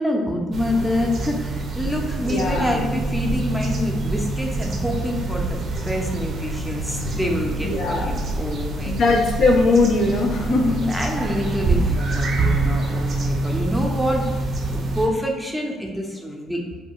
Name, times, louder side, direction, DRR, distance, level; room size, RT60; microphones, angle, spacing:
voice 1, 0.0-9.0 10.4-14.3 14.9-16.6, left 1 dB, ahead, 0 dB, 0.6 m, -26 dB
sound 1, 0.5-15.1, right 2 dB, 50° right, 0.5 m, -26 dB
voice 2, 2.2-2.8 7.6-8.2 8.9-10.7, left 3 dB, 60° left, 1 dB, 0.4 m, -20 dB
2.3 x 2.2 x 3.6 m, 1.3 s
supercardioid pair, 65°, 0 cm